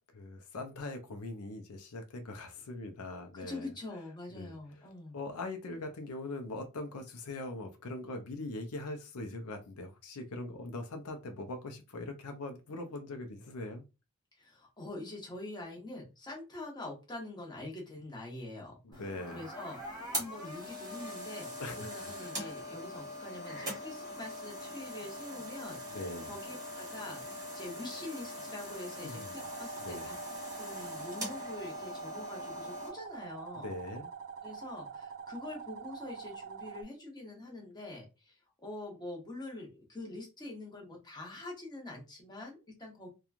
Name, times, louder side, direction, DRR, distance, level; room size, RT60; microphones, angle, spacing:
voice 1, 0.1-3.7 4.3-13.8 18.8-19.4 21.6-22.6 25.9-26.3 29.0-29.4 29.8-30.1 33.6-34.1, left 2 dB, 75° left, 0.5 m, -42 dB
voice 2, 3.3-5.2 14.4-19.0 19.3-26.0 26.3-30.2 30.6-33.7 34.4-38.4 38.6-43.1, left 2 dB, 20° left, 0.9 m, -45 dB
sound 1, 18.9-32.9, equal, 15° right, 1.1 m, -42 dB
sound 2, 29.4-36.8, right 6 dB, 60° right, 0.5 m, -45 dB
2.9 x 2.3 x 2.4 m
head